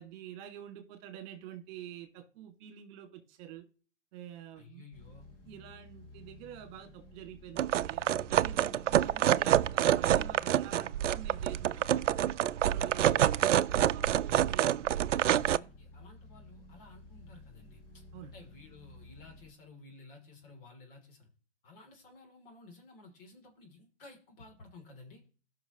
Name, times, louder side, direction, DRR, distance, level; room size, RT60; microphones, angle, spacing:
voice 1, 0.0-3.6 4.1-4.9 5.5-12.2 12.6-13.4 13.9-14.8 18.1-18.3, right 10 dB, 40° right, 5 dB, 2.2 m, -48 dB
voice 2, 4.5-5.3 13.1-13.5 14.3-14.8 15.5-21.3 21.6-25.3, left 3 dB, 50° left, 2 dB, 3.1 m, -54 dB
sound 1, 4.9-19.5, left 2 dB, 25° left, 2.1 m, -54 dB
sound 2, 7.6-15.6, right 11 dB, 85° right, 0.5 m, -27 dB
15.5 x 6.0 x 3.0 m, 0.39 s
hypercardioid pair, 135°, 36 cm